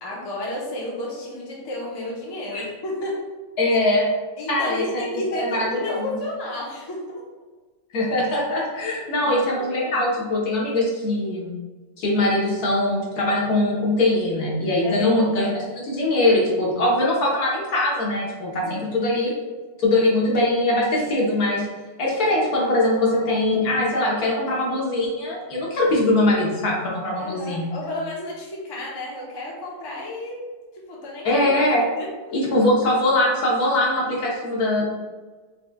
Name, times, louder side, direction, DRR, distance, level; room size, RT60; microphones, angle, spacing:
voice 1, 0.0-3.3 4.4-7.2 8.8-9.4 14.8-15.1 18.6-19.0 27.2-30.4 30.7-31.5 31.9-32.1, left 1 dB, 35° left, -4 dB, 0.4 m, -32 dB
voice 2, 3.6-4.0 4.5-5.0 5.3-6.1 7.9-11.5 12.0-19.3 19.8-21.6 22.0-27.7 31.2-31.8 32.3-34.8, left 1 dB, 65° left, -4 dB, 1.5 m, -22 dB
5.3 x 3.2 x 2.3 m, 1.3 s
omnidirectional pair, 1.8 m